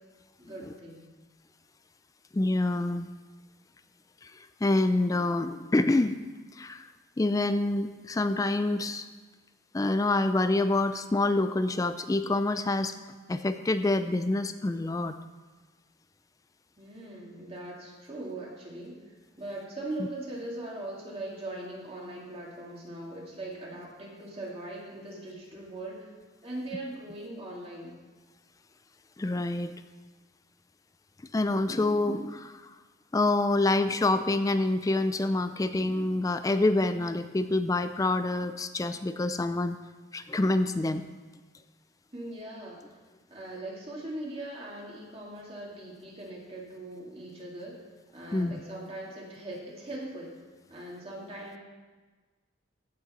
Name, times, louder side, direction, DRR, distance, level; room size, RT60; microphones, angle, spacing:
voice 1, 0.4-1.1 16.8-26.1 26.4-28.0 42.1-42.8 43.3-47.9 48.1-50.3 50.7-51.6, right 1 dB, 30° right, -3 dB, 2.1 m, -40 dB
voice 2, 2.3-3.1 4.2-6.2 6.5-6.9 7.2-9.1 9.7-13.0 13.3-15.2 29.2-29.7 31.3-32.7 33.1-39.8 40.1-41.0 48.3-48.5, left 2 dB, 20° left, 10 dB, 0.3 m, -27 dB
15.0 x 6.3 x 4.2 m, 1.3 s
head